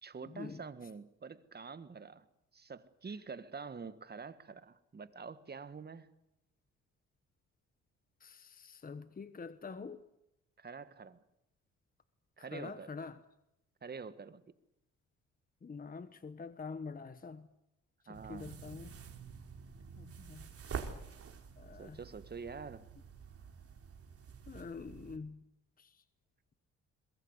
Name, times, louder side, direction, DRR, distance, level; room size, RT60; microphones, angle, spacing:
voice 1, 0.0-2.3 2.5-6.1 10.6-11.2 12.4-12.9 13.8-14.4 18.1-18.7 21.8-22.9, right 5 dB, 35° right, 1.7 m, -47 dB
voice 2, 8.2-10.0 12.5-13.1 15.6-17.5 18.3-18.9 20.0-20.5 21.6-22.0 24.5-25.4, left 4 dB, 30° left, 1.2 m, -45 dB
sound 1, 18.1-25.2, right 6 dB, 50° right, 3.6 m, -48 dB
22.0 x 22.0 x 8.2 m
cardioid pair, 90°, 30 cm